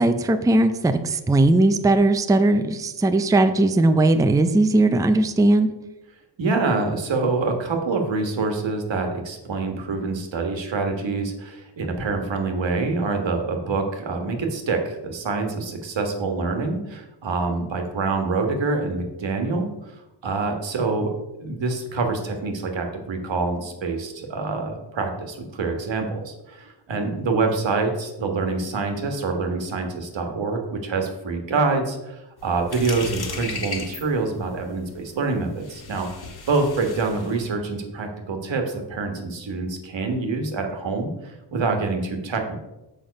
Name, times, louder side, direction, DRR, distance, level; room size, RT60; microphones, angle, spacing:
voice 1, 0.0-5.7, right 2 dB, 10° right, 8 dB, 0.4 m, -18 dB
voice 2, 6.4-19.9 20.2-21.1 21.4-36.1 36.5-42.6, right 3 dB, 85° right, 4 dB, 1.5 m, -26 dB
sound 1, 32.4-37.5, left 4 dB, 55° left, 1.5 m, -36 dB
6.9 x 5.7 x 5.2 m, 0.99 s
wide cardioid pair, 125°, 44 cm